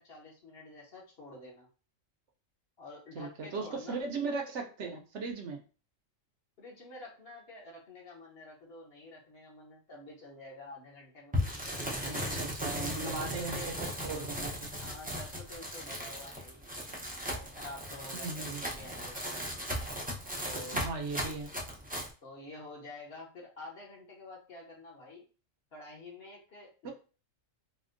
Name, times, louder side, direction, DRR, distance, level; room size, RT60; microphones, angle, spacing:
voice 1, 0.0-1.7 2.8-4.0 6.6-12.4 12.9-13.7 14.8-16.7 17.3-19.4 20.4-20.8 21.2-21.4 22.2-25.2 25.7-26.9, left 2 dB, 55° left, -2 dB, 1.1 m, -49 dB
voice 2, 3.2-5.6 12.0-13.8 14.0-14.7 18.1-18.7 20.7-21.5 26.8-26.9, right 4 dB, 65° right, 3 dB, 0.9 m, -38 dB
sound 1, 11.3-22.1, equal, 15° right, 0.3 m, -37 dB
4.2 x 2.1 x 2.5 m, 0.36 s
omnidirectional pair, 1.4 m